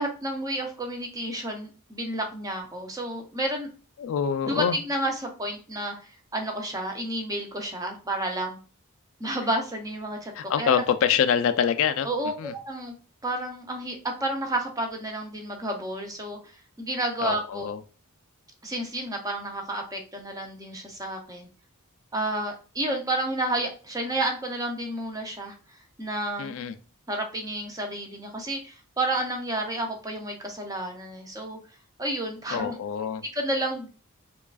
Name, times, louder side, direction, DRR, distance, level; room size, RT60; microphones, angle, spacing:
voice 1, 0.0-3.7 4.5-5.9 6.3-8.6 9.2-10.3 10.6-10.8 12.0-12.9 13.2-16.4 16.8-17.7 18.6-21.5 22.1-25.6 26.0-26.6 27.1-31.6 32.0-32.8 33.3-33.9, right 1 dB, 15° right, 2 dB, 0.6 m, -30 dB
voice 2, 4.0-4.8 10.3-12.1 12.4-12.5 17.2-17.8 26.4-26.7 32.5-33.2, left 8 dB, 65° left, 11 dB, 0.3 m, -25 dB
4.5 x 2.3 x 2.4 m, 0.37 s
head